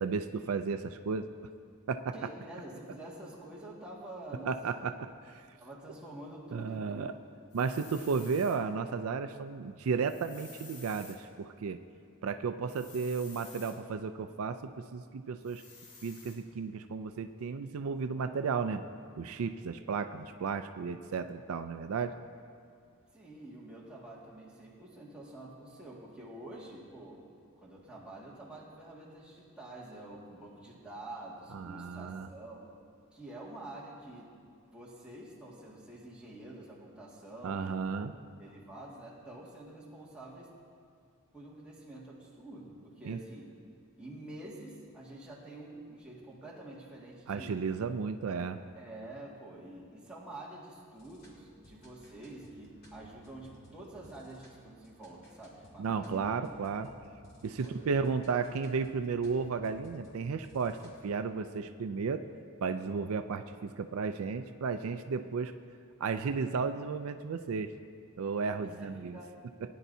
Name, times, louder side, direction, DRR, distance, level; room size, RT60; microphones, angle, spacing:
voice 1, 0.0-1.3 1.9-2.1 4.5-5.1 6.5-7.1 7.5-11.8 12.2-14.6 14.9-15.6 16.0-18.8 19.2-22.2 31.5-32.3 37.4-38.1 43.0-43.2 47.3-48.6 55.8-56.9 57.4-62.3 62.6-65.5 66.0-67.7 68.2-69.2, right 5 dB, 75° right, 9 dB, 0.4 m, -33 dB
voice 2, 2.1-4.9 5.6-7.3 23.1-27.2 27.6-32.7 33.1-34.3 34.7-37.8 38.4-40.5 41.3-43.5 44.0-47.6 48.7-56.4 57.6-57.9 68.6-69.4, right 1 dB, 5° right, -6 dB, 1.9 m, -47 dB
sound 1, 7.5-8.6 10.0-11.2 12.7-13.8 15.4-16.4, left 3 dB, 85° left, 2.0 m, -52 dB
sound 2, 50.9-61.1, equal, 45° left, 2.4 m, -59 dB
19.5 x 10.0 x 2.7 m, 2.3 s
head